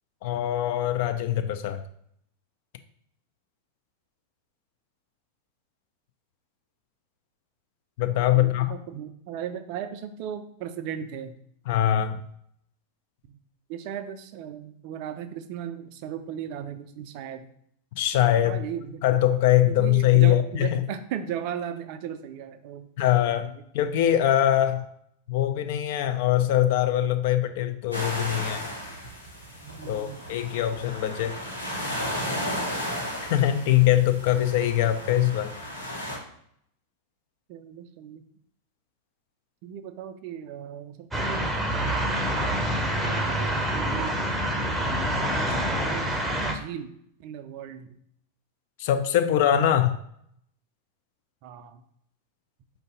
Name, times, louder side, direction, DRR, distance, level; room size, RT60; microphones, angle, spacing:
voice 1, 0.2-1.8 8.0-8.7 11.7-12.2 17.9-18.6 19.0-20.8 23.0-24.9 25.3-28.6 29.9-31.4 33.3-35.5 48.8-50.0, left 12 dB, 50° left, 8 dB, 0.4 m, -22 dB
voice 2, 8.3-11.4 13.3-13.4 13.7-17.5 18.4-19.0 19.7-22.9 23.4-23.6 29.6-30.2 37.5-38.2 39.6-41.5 41.9-42.5 43.0-44.1 44.5-46.1 46.5-46.9 47.2-47.9 51.4-51.8, right 9 dB, 45° right, 10 dB, 0.3 m, -37 dB
sound 1, 27.9-36.2, equal, 85° left, 1.0 m, -34 dB
sound 2, 41.1-46.5, right 1 dB, 10° right, 0.6 m, -26 dB
4.5 x 2.6 x 3.6 m, 0.70 s
figure-of-eight pair, 90°, 0 cm